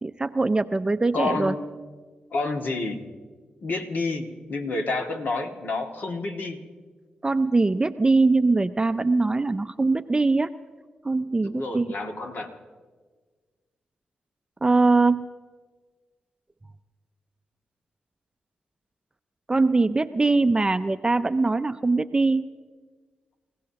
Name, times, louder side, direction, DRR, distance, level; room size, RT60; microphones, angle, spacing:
voice 1, 0.0-1.5 7.2-10.5 11.0-11.9 14.6-15.3 19.5-22.5, right 3 dB, 25° right, 10 dB, 0.5 m, -22 dB
voice 2, 1.1-1.7 2.3-3.0 3.6-6.6 11.4-12.5, left 3 dB, 60° left, 3 dB, 2.0 m, -29 dB
28.5 x 16.0 x 2.9 m, 1.5 s
supercardioid pair, 50°, 3 cm